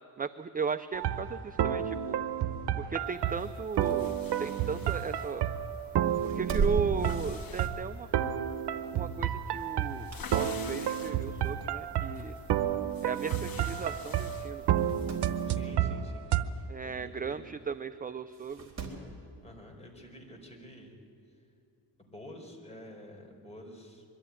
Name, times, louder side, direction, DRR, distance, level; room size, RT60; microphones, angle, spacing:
voice 1, 0.2-2.2 2.8-5.5 6.2-8.1 8.9-12.4 13.0-14.6 16.7-18.7, right 6 dB, 20° right, 10 dB, 0.5 m, -36 dB
sound 1, 0.9-16.4, right 10 dB, 80° right, 0.9 m, -31 dB
sound 2, 3.1-15.6, left 5 dB, 55° left, 2.0 m, -50 dB
sound 3, 3.6-5.6 6.0-7.9 8.3-8.5 9.8-10.6 11.1-11.2 12.1-12.2 12.4-12.5 12.7-12.8 13.6-13.8 14.1-14.2 14.6-15.3 17.2-17.3 18.3-19.1 20.4-20.5, right 4 dB, 40° right, 3.9 m, -37 dB
voice 2, 15.5-17.4 19.4-20.9 22.0-24.0, left 1 dB, 15° left, 1 dB, 4.6 m, -49 dB
22.5 x 13.5 x 9.9 m, 2.6 s
cardioid pair, 100°, 40 cm